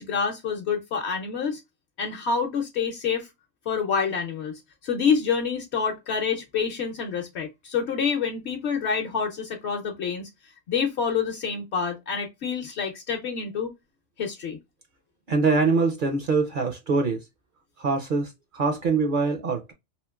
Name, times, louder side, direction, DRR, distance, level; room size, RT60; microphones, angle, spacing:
voice 1, 0.0-1.6 2.0-3.3 3.7-10.3 10.7-13.7 14.2-14.6, left 6 dB, 65° left, 0.9 m, -27 dB
voice 2, 15.3-17.2 17.8-19.7, right 4 dB, 55° right, 0.6 m, -24 dB
3.0 x 2.8 x 2.2 m
omnidirectional pair, 1.3 m